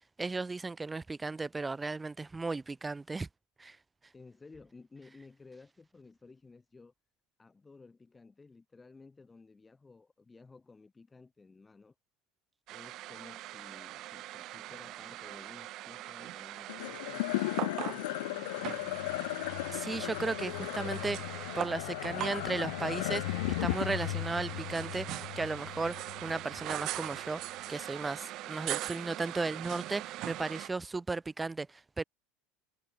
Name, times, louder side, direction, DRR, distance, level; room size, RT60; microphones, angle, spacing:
voice 1, 0.2-3.3 3.6-3.8 19.7-32.0, right 3 dB, 10° right, 0.8 m, -35 dB
voice 2, 4.1-6.9 7.4-11.9 12.7-19.0, left 4 dB, 10° left, 3.2 m, -55 dB
sound 1, 12.7-30.7, right 16 dB, 45° right, 1.2 m, -41 dB
sound 2, 16.7-27.2, left 20 dB, 85° left, 1.6 m, -36 dB
cardioid pair, 155°, 0 cm